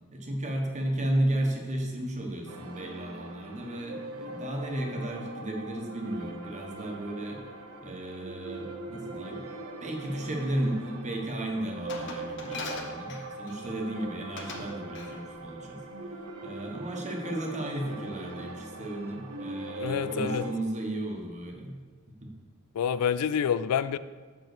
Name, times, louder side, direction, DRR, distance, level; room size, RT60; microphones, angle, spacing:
voice 1, 0.1-7.4 7.8-9.4 9.8-15.8 16.4-21.8 22.2-22.3, right 1 dB, 30° right, 2 dB, 1.3 m, -34 dB
sound 1, 2.5-20.5, right 2 dB, 75° right, 0.8 m, -41 dB
Glass, 11.9-13.7 14.4-14.7 14.9-15.2, left 3 dB, 55° left, 1.1 m, -40 dB
voice 2, 19.8-20.5 22.7-24.0, left 8 dB, 80° left, 15 dB, 0.3 m, -27 dB
6.6 x 6.0 x 6.7 m, 1.4 s
head